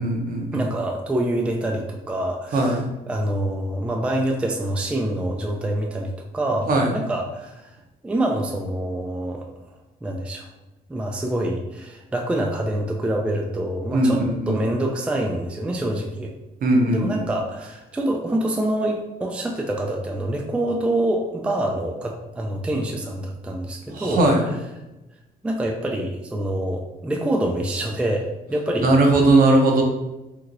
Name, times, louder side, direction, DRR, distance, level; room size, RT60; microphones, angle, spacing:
voice 1, 0.0-0.7 2.5-2.9 6.7-6.9 13.9-14.6 16.6-17.2 23.9-24.4 28.8-29.8, right 2 dB, 55° right, 1 dB, 0.7 m, -19 dB
voice 2, 0.5-7.7 8.0-9.5 10.0-10.5 10.9-16.3 16.9-24.5 25.4-28.9, right 1 dB, 5° right, 1 dB, 0.3 m, -26 dB
2.9 x 2.8 x 2.5 m, 1.0 s
cardioid pair, 100°, 17 cm